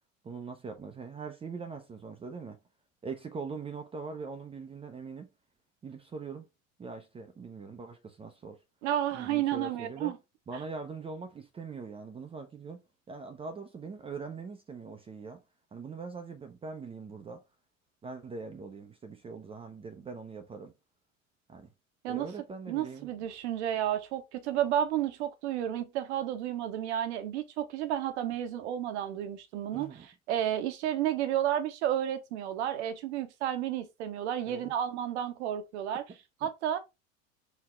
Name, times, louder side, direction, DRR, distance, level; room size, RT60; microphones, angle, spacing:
voice 1, 0.2-2.6 3.0-5.3 5.8-6.5 6.8-8.6 9.1-10.1 10.5-12.8 13.1-15.4 15.7-17.4 18.0-20.7 21.5-21.7 22.1-23.1 29.7-30.1 34.5-34.7 36.4-36.5, right 4 dB, 15° right, 0.6 m, -42 dB
voice 2, 8.8-10.2 22.0-22.3 22.7-36.0 36.4-36.8, right 11 dB, 55° right, 1.0 m, -31 dB
5.0 x 2.8 x 3.5 m
figure-of-eight pair, 75°, 40 cm